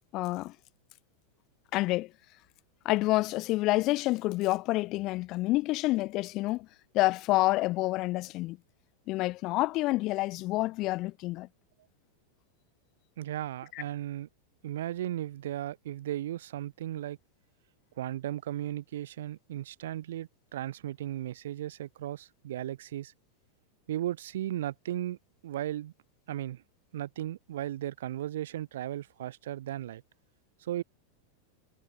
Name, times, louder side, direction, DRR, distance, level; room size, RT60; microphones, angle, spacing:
voice 1, 0.1-0.5 1.7-2.1 2.9-6.7 6.9-8.6 9.1-11.5, left 19 dB, 40° left, 0.4 m, -28 dB
voice 2, 13.2-14.3 14.6-17.2 18.0-23.1 23.9-25.2 25.4-25.9 26.3-26.6 26.9-30.0 30.6-30.8, right 12 dB, 60° right, 0.7 m, -36 dB
figure-of-eight pair, 90°, 0 cm